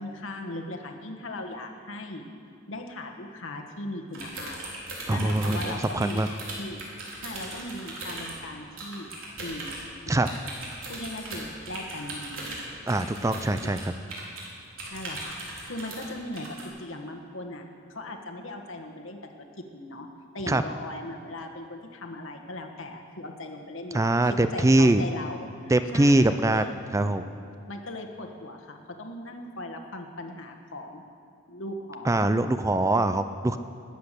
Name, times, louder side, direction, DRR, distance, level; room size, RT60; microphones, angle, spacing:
voice 1, 0.0-2.3 2.7-4.7 5.1-6.2 6.6-6.8 7.2-9.1 9.4-9.7 10.0-10.5 10.9-12.6 13.6-13.7 14.9-15.3 15.6-17.6 17.9-20.1 20.3-26.8 27.7-31.0 31.5-32.2 33.1-33.2, left 1 dB, 70° left, 3 dB, 1.5 m, -38 dB
sound 1, 4.1-8.4 8.8-9.8 10.2-14.5 14.8-16.1 16.3-16.6, right 2 dB, 80° right, 3.7 m, -38 dB
voice 2, 5.1-6.3 10.1-10.3 12.9-13.9 20.5-20.6 23.9-25.0 25.7-26.7 26.9-27.2 32.1-33.6, right 2 dB, 15° right, 10 dB, 0.4 m, -23 dB
20.0 x 8.1 x 6.8 m, 2.5 s
head